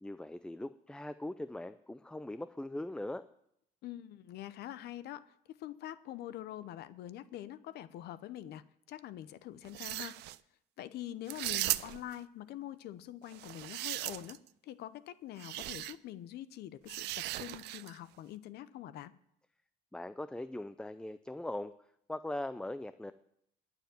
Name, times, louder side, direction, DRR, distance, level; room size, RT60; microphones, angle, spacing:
voice 1, 0.0-3.2 19.9-21.7 22.1-23.1, left 1 dB, 5° left, 13 dB, 0.4 m, -40 dB
voice 2, 3.8-10.2 10.8-19.1, left 12 dB, 75° left, 15 dB, 0.8 m, -45 dB
sound 1, 9.6-10.4 11.3-12.1 13.3-14.5 15.4-15.9 16.9-18.0, right 17 dB, 80° right, 0.5 m, -37 dB
11.5 x 7.2 x 9.2 m, 0.74 s
cardioid pair, 110°, 17 cm